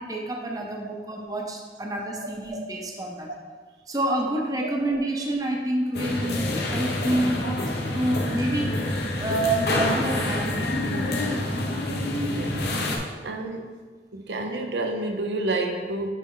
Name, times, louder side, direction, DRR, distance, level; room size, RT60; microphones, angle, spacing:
voice 1, 0.0-3.3 3.9-7.4 7.9-8.8 9.2-10.7, right 1 dB, 20° right, 0 dB, 0.6 m, -28 dB
sound 1, 5.9-13.0, left 1 dB, 70° left, 0.9 m, -27 dB
voice 2, 12.3-12.6 13.2-13.7 14.1-16.1, right 2 dB, 85° right, 4 dB, 0.7 m, -29 dB
9.1 x 3.6 x 3.8 m, 1.5 s
head